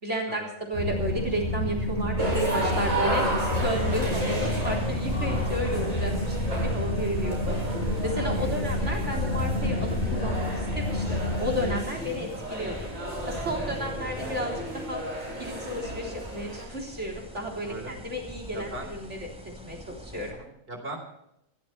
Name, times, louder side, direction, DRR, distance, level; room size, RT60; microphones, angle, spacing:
voice 1, 0.0-0.4 0.7-3.3 3.6-7.6 8.0-12.8 13.3-14.5 14.9-15.0 15.4-19.2 19.6-20.4, equal, 60° right, 1 dB, 4.0 m, -32 dB
sound 1, 0.7-11.8, left 1 dB, 40° left, 5.8 m, -29 dB
voice 2, 1.9-2.3 6.0-6.3 8.3-8.7 11.9-12.3 13.6-14.0 17.6-18.0 18.5-18.9 20.3-21.0, right 1 dB, 45° right, 3 dB, 4.0 m, -41 dB
sound 2, 2.2-16.6, right 1 dB, 80° right, 8.3 m, -33 dB
sound 3, 3.8-20.3, left 1 dB, 5° right, 4.5 m, -40 dB
28.0 x 13.5 x 3.3 m, 0.79 s
omnidirectional pair, 1.4 m